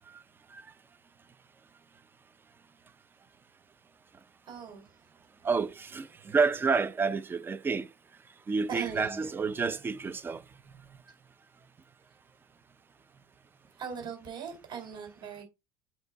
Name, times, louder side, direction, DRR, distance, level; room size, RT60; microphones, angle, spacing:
voice 1, 4.5-5.0 8.7-9.3 13.8-15.4, right 6 dB, 35° right, 3.6 m, -40 dB
voice 2, 5.4-7.9 8.5-10.4, right 4 dB, 15° right, 0.5 m, -29 dB
8.1 x 2.8 x 4.6 m
cardioid pair, 145°, 13 cm